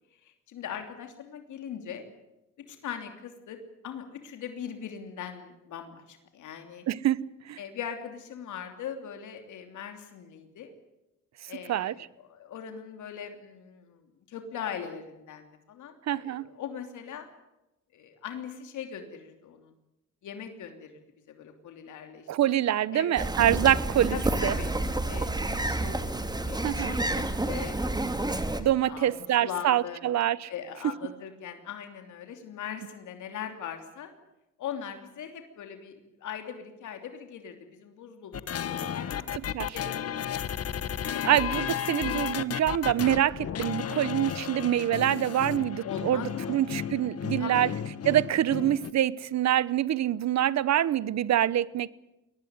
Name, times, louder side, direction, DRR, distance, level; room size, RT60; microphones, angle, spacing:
voice 1, 0.2-2.0 2.7-3.6 3.8-6.8 7.6-10.7 11.5-17.3 17.9-19.7 20.2-21.0 21.3-22.5 22.9-23.3 24.1-24.7 25.1-26.0 26.5-27.8 28.8-30.0 30.5-34.1 34.6-41.3 41.9-42.0 45.8-46.6 47.4-47.7, left 8 dB, 75° left, 3.1 m, -40 dB
voice 2, 6.9-7.6 11.7-11.9 16.1-16.5 22.3-24.2 24.4-24.5 26.6-27.0 28.6-30.5 39.5-39.8 41.2-47.7 48.0-51.9, right 12 dB, 60° right, 0.9 m, -25 dB
sound 1, 23.2-28.6, right 2 dB, 15° right, 2.6 m, -29 dB
sound 2, 38.3-48.9, left 9 dB, 50° left, 1.3 m, -33 dB
22.5 x 19.0 x 9.6 m
cardioid pair, 90°, 30 cm